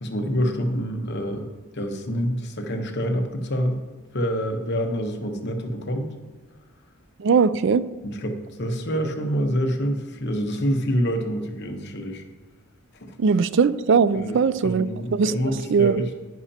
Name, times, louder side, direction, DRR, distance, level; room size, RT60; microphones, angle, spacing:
voice 1, 0.0-3.8 4.1-6.1 8.0-12.2 13.0-13.1 14.1-16.1, equal, 50° left, 4 dB, 1.0 m, -27 dB
voice 2, 7.2-7.8 13.2-14.9 15.1-16.0, right 5 dB, 60° right, 15 dB, 0.4 m, -20 dB
11.0 x 9.9 x 2.8 m, 1.3 s
head